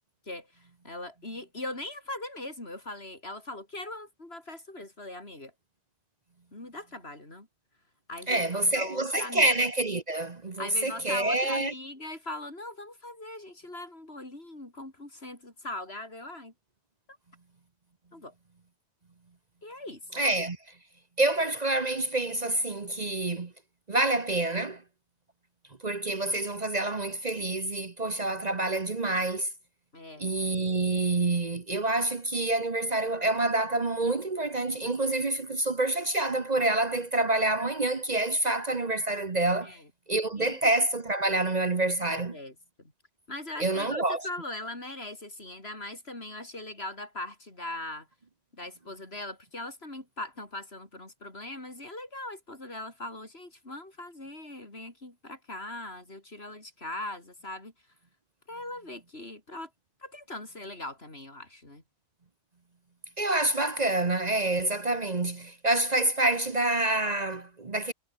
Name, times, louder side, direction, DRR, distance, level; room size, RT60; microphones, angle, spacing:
voice 1, 0.3-5.5 6.5-7.5 8.1-9.5 10.6-16.5 18.1-18.3 19.6-20.0 29.9-30.3 39.6-39.9 40.4-40.6 42.1-42.9 43.3-48.1 48.5-57.7 58.5-59.7 60.0-61.8, left 2 dB, 60° left, 5.6 m, -40 dB
voice 2, 8.3-11.7 20.1-20.6 21.2-23.5 23.9-24.8 25.8-29.5 30.2-39.8 40.1-42.4 43.6-44.3 63.2-67.9, right 2 dB, 35° right, 1.3 m, -27 dB
omnidirectional pair, 1.2 m